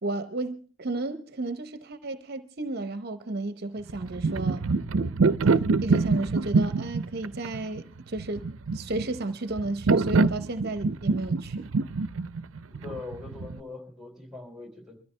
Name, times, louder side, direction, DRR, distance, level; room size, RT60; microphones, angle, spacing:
voice 1, 0.0-4.7 5.8-8.4 8.7-11.7, right 2 dB, 50° right, 0.9 m, -33 dB
sound 1, 3.9-13.6, right 4 dB, 85° right, 0.6 m, -25 dB
voice 2, 12.7-15.0, left 3 dB, 5° right, 4.2 m, -41 dB
23.0 x 13.5 x 3.3 m
head